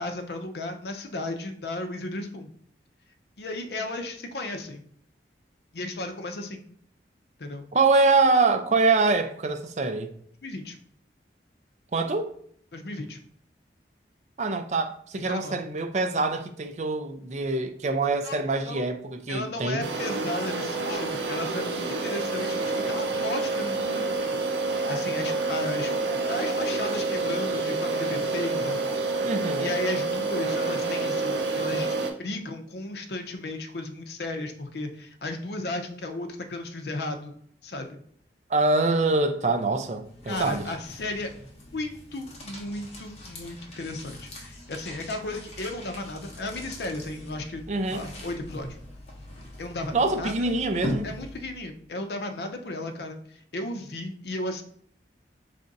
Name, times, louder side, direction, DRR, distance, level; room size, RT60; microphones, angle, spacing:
voice 1, 0.0-2.5 3.4-4.8 5.7-6.6 7.4-7.6 10.4-10.8 12.7-13.2 15.2-15.6 18.2-18.8 19.3-26.0 26.3-28.8 29.1-29.3 29.6-31.9 32.2-37.3 37.6-38.0 40.3-41.3 41.7-47.6 47.9-48.7 49.6-50.6 51.0-54.6, left 2 dB, 65° left, 0.6 m, -34 dB
voice 2, 7.7-10.1 11.9-12.3 14.4-19.8 29.2-29.7 38.5-40.7 47.7-48.0 49.9-51.1, right 3 dB, 40° right, 0.4 m, -24 dB
sound 1, 19.8-32.1, right 3 dB, 80° right, 0.6 m, -28 dB
sound 2, 39.6-51.8, equal, 35° left, 0.8 m, -41 dB
3.3 x 2.5 x 4.0 m
head